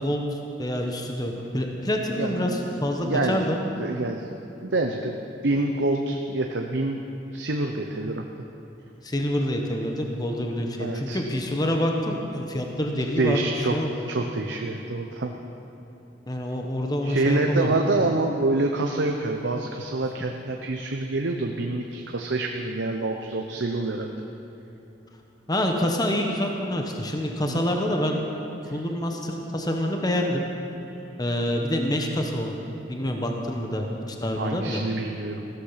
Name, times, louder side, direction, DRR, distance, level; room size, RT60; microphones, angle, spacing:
voice 1, 0.0-3.6 9.0-13.9 16.3-17.8 25.5-28.2 28.7-30.4 31.2-32.5 32.9-34.8, left 1 dB, 20° left, 2 dB, 1.1 m, -27 dB
voice 2, 2.2-3.5 3.8-4.2 4.6-5.2 5.4-7.0 7.3-8.2 10.8-11.2 13.2-13.8 14.1-15.3 17.0-24.1 27.5-27.6 28.6-28.8 33.6-33.7 34.4-35.4, right 2 dB, 75° right, 3 dB, 0.8 m, -27 dB
15.0 x 13.0 x 5.7 m, 2.9 s
head